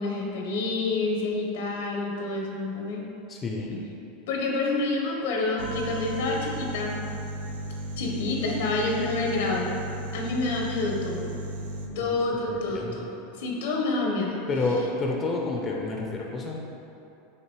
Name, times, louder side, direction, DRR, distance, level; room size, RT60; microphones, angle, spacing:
voice 1, 0.0-3.0 4.3-7.0 8.0-9.8 10.1-11.3 12.0-13.1 13.4-14.4, left 3 dB, 80° left, -1 dB, 0.8 m, -28 dB
voice 2, 3.3-3.8 12.0-12.1 12.4-13.0 14.5-16.6, left 3 dB, 25° left, -1 dB, 0.5 m, -29 dB
sound 1, 5.6-11.9, right 1 dB, 90° right, 0.4 m, -35 dB
6.6 x 2.6 x 3.0 m, 2.9 s
supercardioid pair, 125°, 0 cm